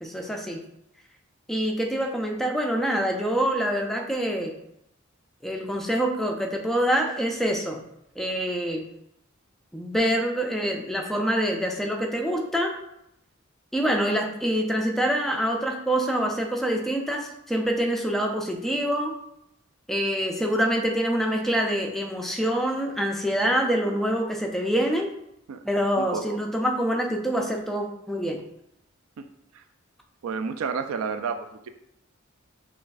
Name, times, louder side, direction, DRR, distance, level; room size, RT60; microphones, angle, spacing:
voice 1, 0.0-0.6 1.5-4.5 5.4-7.8 8.2-8.9 9.7-12.8 13.7-19.1 19.9-25.1 25.6-28.4, equal, ahead, 1 dB, 0.4 m, -26 dB
voice 2, 26.0-26.4 29.2-29.3 30.2-31.7, right 5 dB, 90° right, 9 dB, 0.4 m, -30 dB
5.9 x 2.4 x 2.5 m, 0.79 s
head